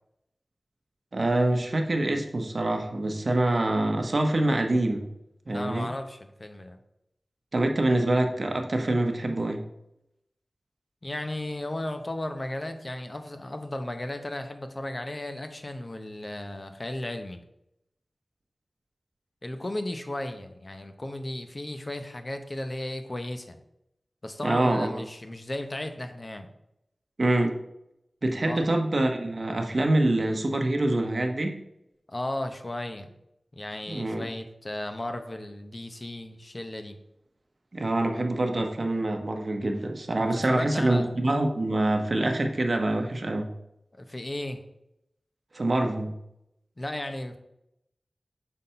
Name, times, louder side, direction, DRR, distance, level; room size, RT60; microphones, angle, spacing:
voice 1, 1.1-5.0 5.5-5.9 7.5-9.6 24.4-25.0 27.2-27.6 28.2-31.5 33.9-34.2 37.7-43.5 45.5-46.1, right 1 dB, 55° right, 4 dB, 0.9 m, -25 dB
voice 2, 5.5-6.8 11.0-17.4 19.4-23.6 24.2-26.5 28.5-28.7 32.1-33.1 33.5-37.0 40.2-41.1 44.0-44.6 46.8-47.4, left 1 dB, 35° left, 6 dB, 0.8 m, -35 dB
5.6 x 4.1 x 5.6 m, 0.81 s
wide cardioid pair, 85°, 0 cm